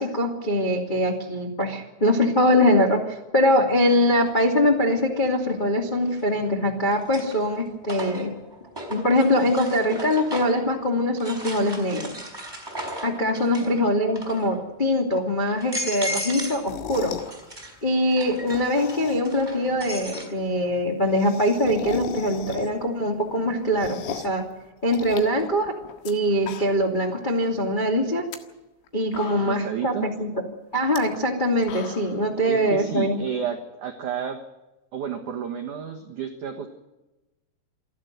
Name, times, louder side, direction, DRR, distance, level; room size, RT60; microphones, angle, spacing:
voice 1, 0.0-8.3 8.9-12.1 13.0-17.1 17.8-24.4 24.8-25.7 26.0-28.2 28.9-30.3 30.7-33.2, left 1 dB, 40° left, 0 dB, 0.6 m, -23 dB
sound 1, 4.3-4.4 6.1-6.5 6.9-10.7 11.2-13.8 14.1-14.6 15.1-15.2 15.6-16.6 16.9-20.3, equal, 5° right, 4.3 m, -35 dB
sound 2, 16.5-17.3 18.3-19.4 19.8-19.9 20.1-20.2 20.4-20.5 20.7-22.9 23.3-24.4 24.9-26.1 26.4-27.0 27.3-27.4 28.1-28.4 28.8-28.9 29.1-29.8 30.8-31.0 31.4-32.2, left 8 dB, 80° left, 4.2 m, -37 dB
voice 2, 29.3-30.1 32.4-34.4 34.9-36.8, right 8 dB, 80° right, 2 dB, 1.7 m, -31 dB
28.0 x 11.5 x 9.3 m, 1.1 s
omnidirectional pair, 5.9 m